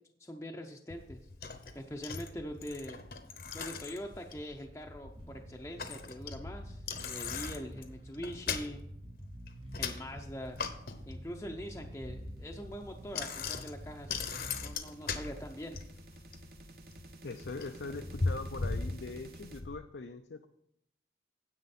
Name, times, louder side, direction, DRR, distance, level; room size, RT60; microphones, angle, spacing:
voice 1, 0.2-1.3 1.7-3.0 3.5-8.8 9.8-10.6 11.1-14.1 14.6-15.8, equal, 15° left, 1 dB, 0.6 m, -43 dB
Bicycle, 0.9-19.8, left 4 dB, 55° left, 0.9 m, -40 dB
Bass guitar, 5.1-14.7, right 1 dB, 30° right, 0.7 m, -49 dB
sound 1, 11.5-19.6, right 2 dB, 60° right, 1.1 m, -55 dB
voice 2, 17.2-20.5, left 3 dB, 85° left, 6 dB, 0.6 m, -42 dB
10.0 x 8.0 x 4.2 m, 0.74 s
head